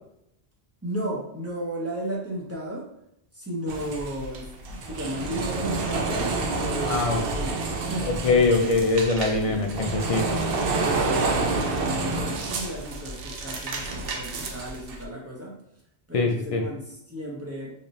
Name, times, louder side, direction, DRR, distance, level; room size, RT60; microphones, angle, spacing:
voice 1, 0.8-2.8 3.3-7.5 7.8-8.2 8.6-8.7 9.4-9.7 10.8-15.6 16.1-17.8, right 1 dB, 15° right, -4 dB, 0.8 m, -34 dB
sound 1, 3.7-15.0, right 3 dB, 70° right, 0.7 m, -29 dB
voice 2, 6.8-7.2 8.1-10.2 16.1-16.6, left 3 dB, 50° left, 3 dB, 0.4 m, -23 dB
3.3 x 2.8 x 2.6 m, 0.76 s
omnidirectional pair, 1.0 m